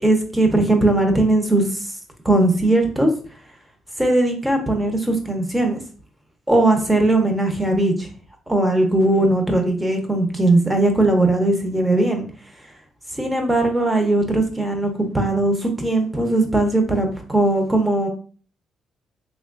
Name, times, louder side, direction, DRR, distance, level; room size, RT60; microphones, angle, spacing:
voice 1, 0.0-1.9 2.2-3.1 4.0-5.8 6.5-8.1 8.5-12.3 13.2-18.1, right 2 dB, 10° right, 0.8 m, -19 dB
3.5 x 3.0 x 2.4 m
cardioid pair, 90°, 0 cm